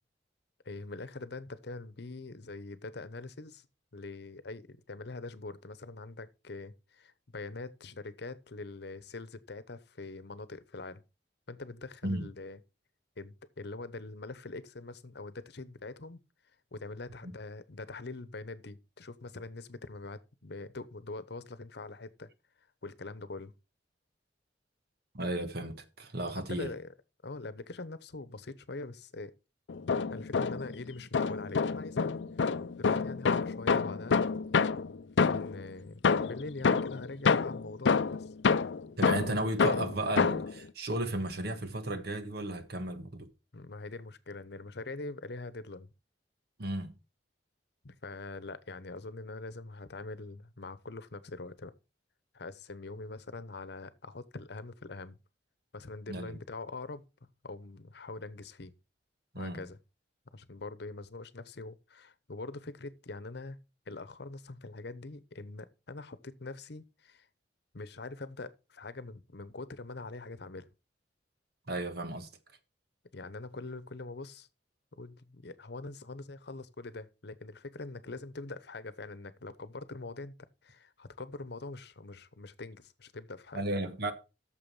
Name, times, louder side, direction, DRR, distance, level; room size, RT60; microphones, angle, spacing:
voice 1, 0.6-3.7 3.9-11.0 11.5-12.6 13.2-16.2 16.7-22.3 22.8-23.5 26.5-26.9 27.2-29.3 30.1-34.2 35.2-38.3 43.5-45.9 47.8-51.7 52.3-55.2 55.7-57.0 57.4-58.7 59.3-59.8 60.3-63.6 63.9-67.3 67.7-70.7 73.1-74.5 74.9-80.3 80.6-83.6, left 3 dB, 70° left, 0.9 m, -43 dB
voice 2, 25.1-26.7 39.0-43.3 46.6-46.9 56.1-56.4 59.3-59.7 71.7-72.3 83.5-84.1, right 1 dB, 60° right, 1.5 m, -34 dB
sound 1, 29.7-30.8 31.1-35.6 36.0-40.6, left 5 dB, 90° left, 0.5 m, -28 dB
8.7 x 6.9 x 5.5 m
head